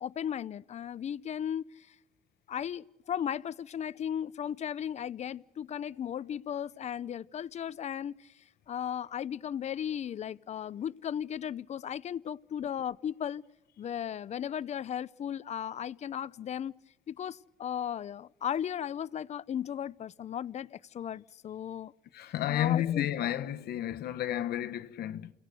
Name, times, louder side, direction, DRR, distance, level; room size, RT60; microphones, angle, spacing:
voice 1, 0.0-1.9 2.5-8.3 8.7-13.4 13.8-16.7 17.1-21.9 22.5-23.1, left 9 dB, 40° left, 0.7 m, -36 dB
voice 2, 22.1-25.3, left 12 dB, 65° left, 1.3 m, -31 dB
29.5 x 17.5 x 6.5 m
cardioid pair, 110°, 17 cm